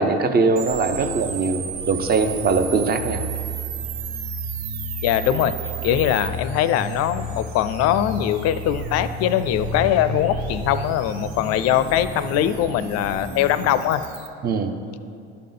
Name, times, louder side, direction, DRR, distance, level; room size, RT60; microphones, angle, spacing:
voice 1, 0.0-3.2 14.4-14.7, right 4 dB, 30° right, 7 dB, 0.6 m, -21 dB
sound 1, 0.6-14.3, right 8 dB, 85° right, 0.7 m, -37 dB
sound 2, 0.7-13.8, right 1 dB, 50° right, 1.4 m, -33 dB
voice 2, 5.0-5.6 5.8-14.0, left 11 dB, 55° left, 13 dB, 0.4 m, -21 dB
11.0 x 3.8 x 3.8 m, 2.4 s
hypercardioid pair, 75°, 31 cm